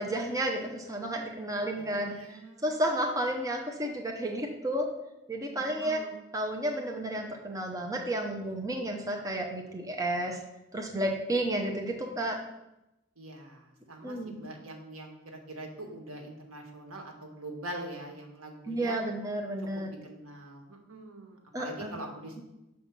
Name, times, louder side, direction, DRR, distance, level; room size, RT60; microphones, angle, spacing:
voice 1, 0.0-4.9 5.3-6.0 6.3-10.4 10.7-12.4 14.0-14.3 18.7-19.9 21.5-22.0 22.4-22.5, right 1 dB, 15° right, 1 dB, 0.7 m, -32 dB
voice 2, 1.8-2.7 5.6-6.1 13.2-19.0 20.0-22.4, right 1 dB, 80° right, 2 dB, 1.4 m, -43 dB
6.4 x 4.2 x 5.9 m, 0.91 s
head